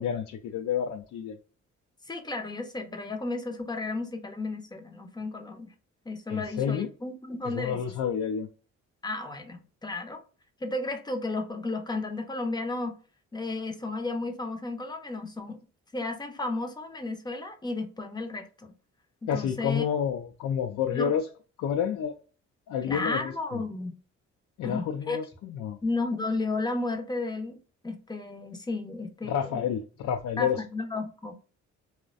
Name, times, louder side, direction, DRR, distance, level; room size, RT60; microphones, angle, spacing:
voice 1, 0.0-1.4 6.3-6.9 7.4-8.5 19.3-21.3 21.6-22.1 22.7-23.6 24.6-25.8 29.3-30.6, left 8 dB, 70° left, 0.4 m, -29 dB
voice 2, 2.1-5.7 6.1-7.9 9.0-10.2 10.6-13.0 13.3-15.6 15.9-18.7 19.2-19.8 20.9-21.1 22.8-24.0 24.6-25.2 25.8-27.6 27.8-29.6 30.4-31.3, left 2 dB, 15° left, 0.5 m, -33 dB
2.4 x 2.1 x 2.4 m
cardioid pair, 90°, 30 cm